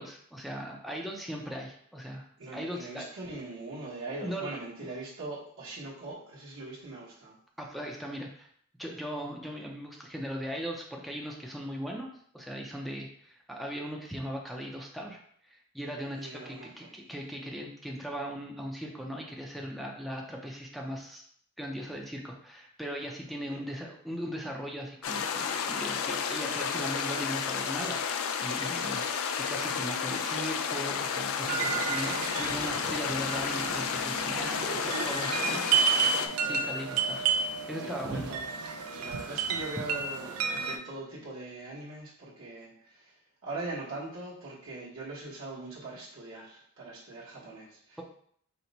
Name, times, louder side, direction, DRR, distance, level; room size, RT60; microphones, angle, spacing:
voice 1, 0.0-2.3 2.5-3.1 4.1-4.6 7.6-8.5 8.8-12.1 12.3-21.2 21.6-35.6 36.4-37.2 37.5-38.3, equal, ahead, -1 dB, 0.4 m, -38 dB
voice 2, 2.4-7.4 16.2-16.9 23.4-23.6 35.2-36.7 37.8-38.4 38.9-43.1 43.4-48.0, right 2 dB, 65° right, -6 dB, 1.1 m, -41 dB
sound 1, 25.0-36.3, left 6 dB, 70° left, 0.4 m, -32 dB
sound 2, 31.4-40.8, right 6 dB, 90° right, 0.5 m, -31 dB
4.3 x 2.1 x 3.9 m, 0.62 s
head